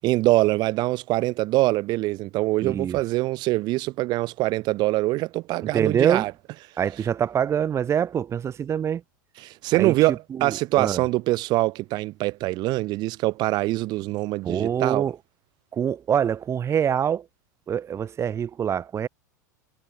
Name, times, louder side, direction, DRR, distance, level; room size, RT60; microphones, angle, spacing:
voice 1, 0.0-6.3 9.4-15.0, right 19 dB, 45° right, 5.1 m, -24 dB
voice 2, 2.6-3.0 5.6-6.3 6.8-9.0 9.7-9.9 10.3-11.0 14.4-15.2 15.7-17.3 17.7-19.1, right 8 dB, 25° right, 3.1 m, -25 dB
figure-of-eight pair, 85°, 10 cm